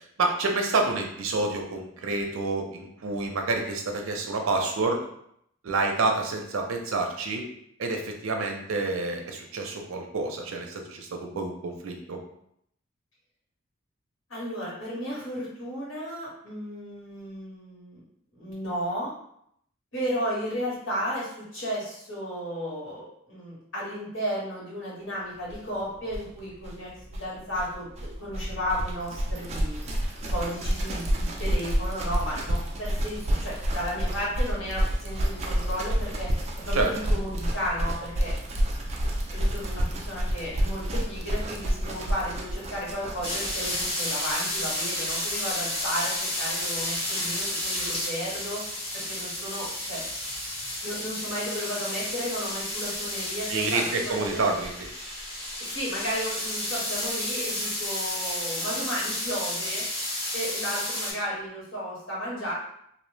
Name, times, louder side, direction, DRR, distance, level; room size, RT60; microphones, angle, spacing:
voice 1, 0.2-5.0 5.6-7.4 7.8-12.2 36.7-36.9 53.5-54.7, right 3 dB, 90° right, 3 dB, 0.5 m, -28 dB
voice 2, 14.3-18.0 18.3-19.1 19.9-29.8 30.3-36.3 36.6-38.6 39.3-48.6 48.9-50.0 50.8-54.6 55.6-59.9 60.3-62.5, equal, 80° left, -7 dB, 1.4 m, -34 dB
sound 1, 25.5-25.6 25.8-25.9 26.1-43.9, equal, 30° right, 0.4 m, -29 dB
sound 2, 43.2-61.1, left 1 dB, 30° left, 1.1 m, -31 dB
2.6 x 2.0 x 3.1 m, 0.72 s
head